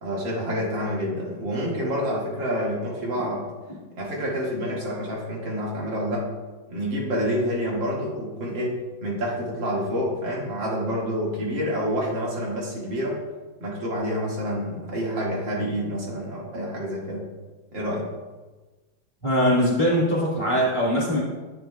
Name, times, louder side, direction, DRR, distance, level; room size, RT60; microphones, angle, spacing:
voice 1, 0.0-3.5 3.9-6.3 6.7-13.2 13.6-17.2 17.7-18.1, equal, 85° right, -3 dB, 2.5 m, -28 dB
voice 2, 19.2-21.2, equal, 30° left, -6 dB, 1.5 m, -22 dB
10.5 x 8.1 x 2.2 m, 1.3 s
omnidirectional pair, 2.0 m